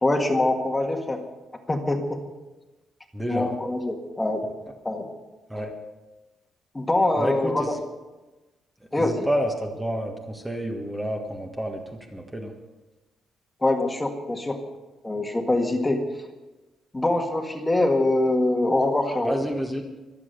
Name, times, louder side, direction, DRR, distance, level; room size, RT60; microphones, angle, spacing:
voice 1, 0.0-1.2 1.7-2.2 3.3-4.5 4.8-5.1 6.7-7.8 8.9-9.3 13.6-14.6 15.0-16.0 16.9-19.4, left 2 dB, 15° left, 3 dB, 1.8 m, -24 dB
voice 2, 3.1-3.5 5.5-5.7 7.2-7.7 9.0-11.8 12.1-12.5 19.2-19.8, equal, 10° right, 2 dB, 1.6 m, -29 dB
24.5 x 8.5 x 6.9 m, 1.1 s
cardioid pair, 145°, 0 cm